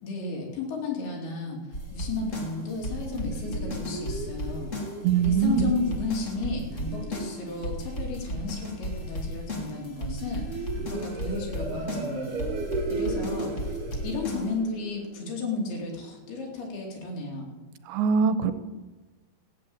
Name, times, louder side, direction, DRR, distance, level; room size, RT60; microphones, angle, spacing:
voice 1, 0.0-1.6 1.9-4.7 5.2-12.6 12.9-13.8 14.0-17.6, left 3 dB, 80° left, -1 dB, 4.6 m, -33 dB
sound 1, 1.7-14.5, left 1 dB, 30° left, 1.6 m, -35 dB
sound 2, 2.5-16.1, right 3 dB, 60° right, 2.5 m, -37 dB
voice 2, 5.0-5.7 17.9-18.5, right 7 dB, 85° right, 11 dB, 2.7 m, -22 dB
15.0 x 7.6 x 8.5 m, 1.2 s
omnidirectional pair, 4.5 m